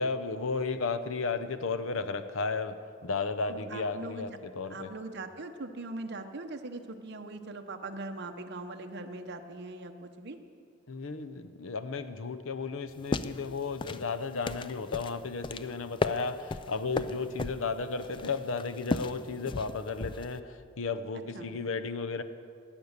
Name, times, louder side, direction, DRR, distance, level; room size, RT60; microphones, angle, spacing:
voice 1, 0.0-2.8 3.0-4.9 10.9-22.2, left 4 dB, 75° left, 10 dB, 0.7 m, -34 dB
voice 2, 3.5-4.3 4.7-10.4 21.3-21.5, right 2 dB, 55° right, 6 dB, 1.0 m, -41 dB
sound 1, 12.9-20.4, left 3 dB, 25° left, 0.4 m, -36 dB
17.5 x 9.8 x 6.6 m, 2.4 s
head